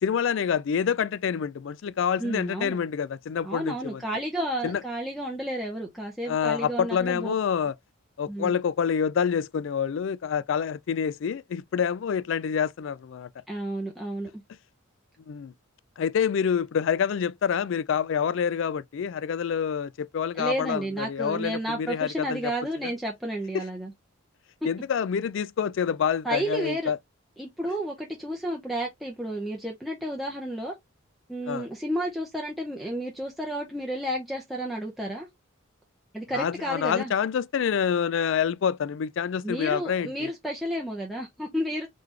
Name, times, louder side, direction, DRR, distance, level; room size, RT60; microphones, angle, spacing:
voice 1, 0.0-4.0 4.6-4.8 6.3-7.7 8.2-13.3 15.3-15.5 16.0-22.5 22.8-22.9 23.5-23.6 24.6-27.0 31.5-31.7 36.3-40.3, left 7 dB, 60° left, 0.3 m, -27 dB
voice 2, 2.2-2.8 3.4-7.3 8.3-8.6 13.5-14.4 20.3-23.9 26.2-26.9 27.4-30.7 31.3-35.3 36.1-37.1 39.4-41.9, right 1 dB, ahead, 0.6 m, -31 dB
3.8 x 3.2 x 3.2 m
head